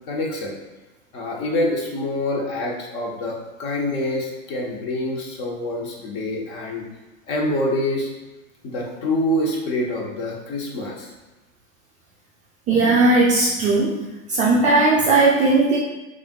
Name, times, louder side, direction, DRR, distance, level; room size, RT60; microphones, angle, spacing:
voice 1, 0.1-0.5 1.1-6.8 7.3-8.1 8.6-11.1, left 1 dB, 35° left, -1 dB, 1.1 m, -26 dB
voice 2, 12.7-14.0 14.3-15.8, right 3 dB, 20° right, -5 dB, 0.5 m, -17 dB
7.1 x 2.6 x 2.3 m, 1.1 s
figure-of-eight pair, 100°, 40 cm